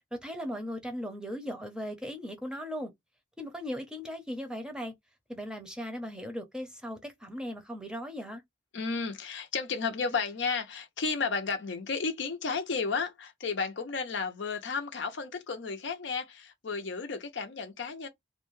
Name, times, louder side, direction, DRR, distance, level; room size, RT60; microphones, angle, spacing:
voice 1, 0.1-2.9 3.4-4.9 5.3-8.4, equal, 5° right, 0.6 m, -38 dB
voice 2, 8.7-18.1, left 5 dB, 90° left, 0.6 m, -33 dB
2.6 x 2.2 x 3.0 m
head